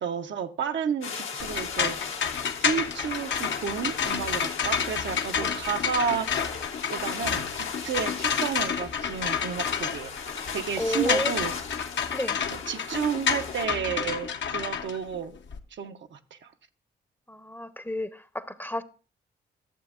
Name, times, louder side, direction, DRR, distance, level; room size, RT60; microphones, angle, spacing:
voice 1, 0.0-2.0 2.6-6.3 6.9-10.2 10.5-11.5 12.5-15.4 15.7-16.5, right 7 dB, 65° right, 0.7 m, -31 dB
sound 1, 1.0-13.6, left 6 dB, 80° left, 1.2 m, -38 dB
sound 2, 1.4-15.6, left 7 dB, 65° left, 0.8 m, -30 dB
voice 2, 10.8-11.4 12.1-12.4 17.3-18.8, left 1 dB, 10° left, 0.7 m, -31 dB
13.0 x 7.0 x 2.4 m
supercardioid pair, 45°, 21 cm